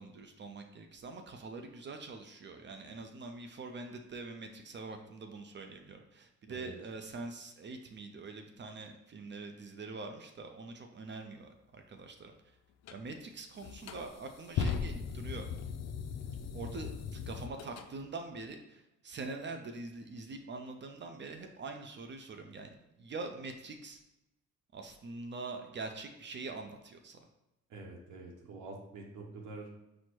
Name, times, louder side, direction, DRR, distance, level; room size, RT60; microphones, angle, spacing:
voice 1, 0.0-12.3 12.9-15.4 16.5-22.7 23.0-24.0 24.7-27.2, right 3 dB, 40° right, 5 dB, 0.5 m, -44 dB
sound 1, 12.8-13.0 13.6-17.9, left 6 dB, 60° left, 0.4 m, -38 dB
voice 2, 27.7-29.7, right 3 dB, 85° right, 0 dB, 0.9 m, -46 dB
4.4 x 2.1 x 4.4 m, 0.91 s
cardioid pair, 90°, 30 cm